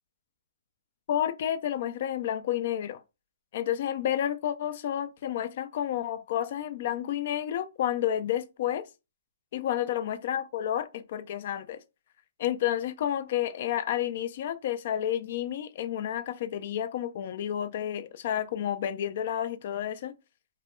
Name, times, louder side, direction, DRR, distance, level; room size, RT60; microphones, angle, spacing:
voice 1, 1.1-3.0 3.5-8.9 9.5-11.8 12.4-20.2, left 10 dB, 50° left, 0.3 m, -30 dB
2.3 x 2.1 x 3.0 m
hypercardioid pair, 150°, 0 cm